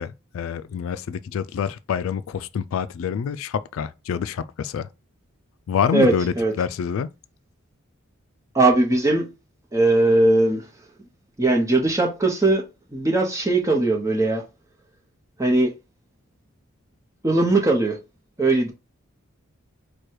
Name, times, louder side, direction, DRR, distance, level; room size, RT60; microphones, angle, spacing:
voice 1, 0.0-4.9 5.7-7.1, left 7 dB, 70° left, 0.3 m, -27 dB
voice 2, 5.9-6.5 8.5-9.3 9.7-10.6 11.4-12.6 12.9-14.4 15.4-15.7 17.2-18.0 18.4-18.7, right 2 dB, 15° right, 0.8 m, -19 dB
4.7 x 2.3 x 4.6 m
head